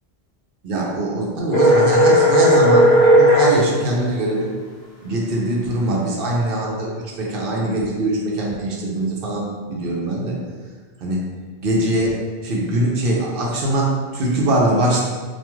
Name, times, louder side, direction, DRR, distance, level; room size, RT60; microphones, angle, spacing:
voice 1, 0.6-4.5 5.0-10.4 11.0-11.2 11.6-15.0, right 1 dB, 65° right, -3 dB, 0.7 m, -22 dB
sound 1, 1.5-3.6, equal, 80° left, 0.9 m, -13 dB
2.3 x 2.2 x 3.0 m, 1.5 s
omnidirectional pair, 1.0 m